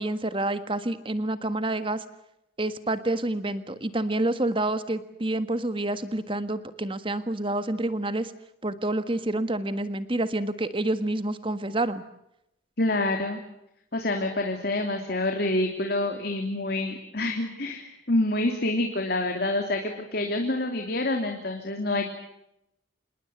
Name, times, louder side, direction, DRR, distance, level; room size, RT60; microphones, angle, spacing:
voice 1, 0.0-2.0 2.6-8.3 8.6-12.0, right 1 dB, 25° right, 11 dB, 1.6 m, -28 dB
voice 2, 12.8-13.4 13.9-22.1, left 2 dB, 55° left, 3 dB, 2.9 m, -27 dB
27.5 x 20.5 x 8.2 m, 0.82 s
head